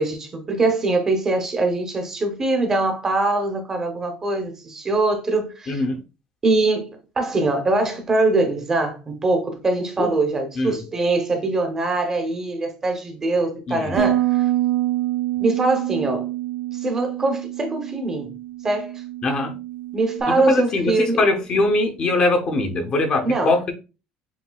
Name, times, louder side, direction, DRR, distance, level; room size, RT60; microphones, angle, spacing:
voice 1, 0.0-5.8 6.4-6.9 7.2-14.5 15.4-16.3 16.8-18.3 18.6-18.9 19.9-21.2 23.2-23.5, right 2 dB, 20° right, 0.8 m, -22 dB
voice 2, 5.7-6.0 10.0-10.1 10.6-10.8 13.7-14.0 19.2-19.5 20.3-23.7, left 2 dB, 30° left, 0.7 m, -21 dB
Bass guitar, 14.0-20.2, right 14 dB, 90° right, 0.5 m, -26 dB
7.0 x 2.6 x 2.3 m
cardioid pair, 170°, 3 cm